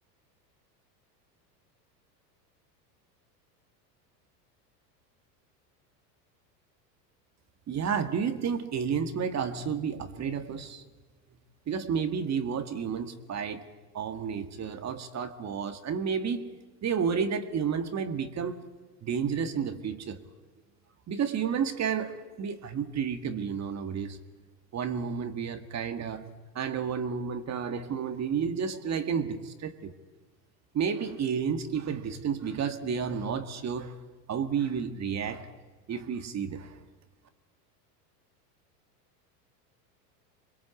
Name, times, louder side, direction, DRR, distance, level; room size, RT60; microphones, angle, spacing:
voice 1, 7.7-10.8 11.7-13.7 13.9-16.5 16.8-18.6 19.0-20.2 21.1-24.2 24.7-29.9 30.7-34.0 34.3-35.5 35.9-36.8, right 6 dB, 30° right, 2.0 m, -31 dB
27.0 x 22.0 x 8.4 m
hypercardioid pair, 95°, 49 cm